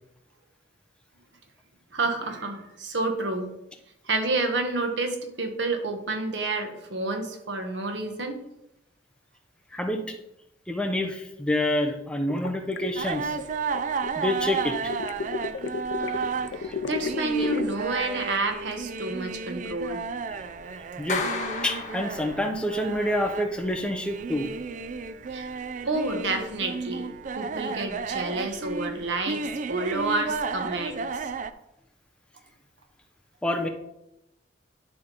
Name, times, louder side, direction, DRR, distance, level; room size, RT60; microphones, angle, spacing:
voice 1, 1.9-3.5 4.0-8.4 16.0-20.0 25.3-25.5 25.9-31.3, right 2 dB, 90° right, 5 dB, 1.2 m, -29 dB
voice 2, 9.7-10.2 10.7-13.4 14.2-14.9 16.6-16.7 21.0-21.2 21.6-24.5 33.4-33.7, left 1 dB, 5° left, 3 dB, 0.8 m, -27 dB
sound 1, 12.3-14.1 14.7-17.9, left 4 dB, 85° left, 0.5 m, -33 dB
sound 2, 13.0-31.5, right 5 dB, 45° right, 0.4 m, -33 dB
Clapping, 21.1-22.7, left 3 dB, 45° left, 1.3 m, -32 dB
10.5 x 3.6 x 5.2 m, 0.85 s
head